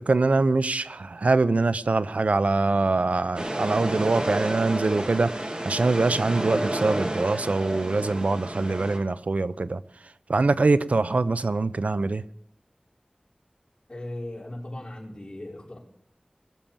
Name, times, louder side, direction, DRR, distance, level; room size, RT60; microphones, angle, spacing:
voice 1, 0.0-9.8 10.3-12.2, right 3 dB, 90° right, 0.6 m, -24 dB
sound 1, 3.3-9.0, right 1 dB, 45° right, 2.8 m, -30 dB
voice 2, 13.9-15.8, left 1 dB, 45° left, 5.2 m, -37 dB
21.5 x 7.4 x 7.1 m
wide cardioid pair, 55°, 2 cm